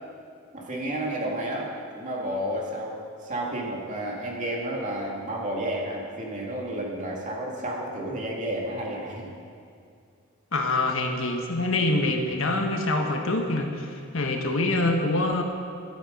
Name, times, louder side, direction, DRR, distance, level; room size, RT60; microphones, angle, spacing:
voice 1, 0.5-9.3, right 1 dB, 35° right, -2 dB, 2.4 m, -31 dB
voice 2, 10.5-15.4, left 2 dB, 65° left, 3 dB, 1.5 m, -25 dB
13.5 x 12.0 x 5.4 m, 2.3 s
head